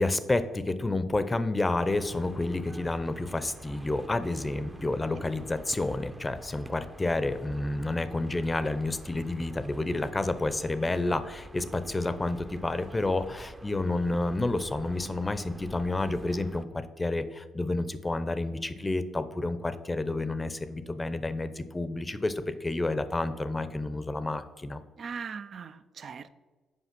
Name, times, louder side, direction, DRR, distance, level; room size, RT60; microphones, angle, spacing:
voice 1, 0.0-24.8, left 2 dB, 20° left, 12 dB, 0.7 m, -30 dB
sound 1, 1.8-16.7, right 1 dB, 15° right, 0.7 m, -47 dB
voice 2, 25.0-26.3, right 6 dB, 50° right, 13 dB, 0.5 m, -39 dB
8.3 x 5.3 x 6.0 m, 1.3 s
cardioid pair, 90°, 0 cm